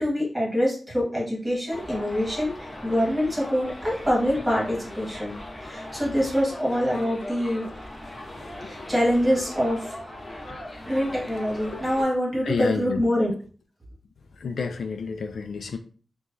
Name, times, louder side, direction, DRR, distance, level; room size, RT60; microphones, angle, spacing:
voice 1, 0.0-5.3 5.6-7.6 8.6-10.1 10.9-13.3, equal, 10° right, 1.5 m, -25 dB
Subway metro underground, 1.7-12.0, left 1 dB, 15° left, 0.7 m, -39 dB
voice 2, 8.2-8.9 10.5-10.8 11.6-12.1 12.4-13.0 14.4-15.8, left 5 dB, 70° left, 0.3 m, -31 dB
4.6 x 2.2 x 2.6 m
wide cardioid pair, 160°, 0 cm